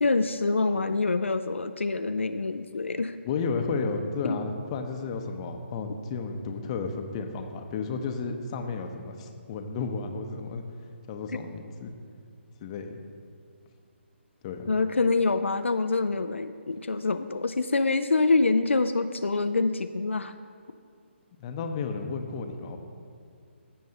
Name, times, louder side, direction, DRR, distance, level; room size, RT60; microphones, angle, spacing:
voice 1, 0.0-3.2 4.2-4.4 14.7-20.3, left 3 dB, 80° left, 9 dB, 0.4 m, -26 dB
voice 2, 3.3-10.6 11.1-11.9 12.6-13.0 14.4-14.7 21.4-22.8, left 4 dB, 30° left, 5 dB, 0.7 m, -32 dB
15.5 x 6.3 x 2.8 m, 2.3 s
figure-of-eight pair, 140°, 7 cm